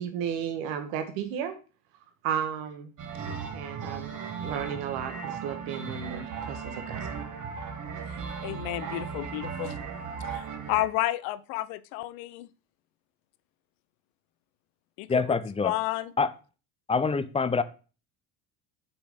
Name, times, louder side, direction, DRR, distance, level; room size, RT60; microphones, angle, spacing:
voice 1, 0.0-1.5 2.2-2.9 3.5-4.1 4.4-7.1, right 8 dB, 85° right, 1.2 m, -33 dB
sound 1, 3.0-10.9, right 6 dB, 45° right, 1.3 m, -37 dB
voice 2, 8.1-9.8 10.2-12.5 15.0-15.4 15.6-16.1, left 16 dB, 90° left, 0.6 m, -31 dB
voice 3, 15.1-15.7 16.2-16.3 16.9-17.6, left 4 dB, 15° left, 0.5 m, -25 dB
5.8 x 4.1 x 5.0 m
supercardioid pair, 95°, 42 cm